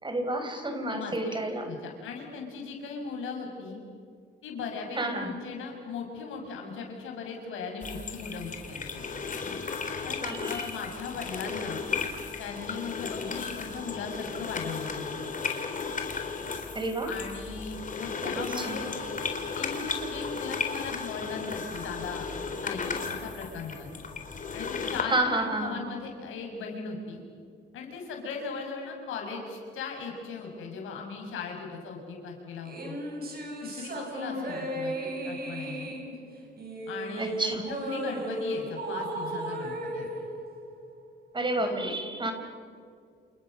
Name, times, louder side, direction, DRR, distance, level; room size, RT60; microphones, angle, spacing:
voice 1, 0.0-1.6 4.9-5.3 10.2-10.6 16.7-17.1 18.4-18.8 25.1-25.8 37.2-37.7 41.3-42.3, right 1 dB, 25° right, 6 dB, 4.4 m, -30 dB
voice 2, 0.9-1.4 1.6-3.8 4.4-9.1 10.0-11.8 12.4-15.3 17.0-18.9 19.5-22.3 22.6-24.0 24.5-27.2 27.7-33.0 33.6-34.9 35.2-35.9 36.9-40.1 41.5-41.9, left 5 dB, 85° left, 2 dB, 6.6 m, -38 dB
sound 1, 7.8-25.0, left 5 dB, 40° left, 3.9 m, -35 dB
sound 2, 32.6-41.2, right 1 dB, 50° right, 7.2 m, -35 dB
29.0 x 28.5 x 6.7 m, 2.3 s
cardioid pair, 90°, 20 cm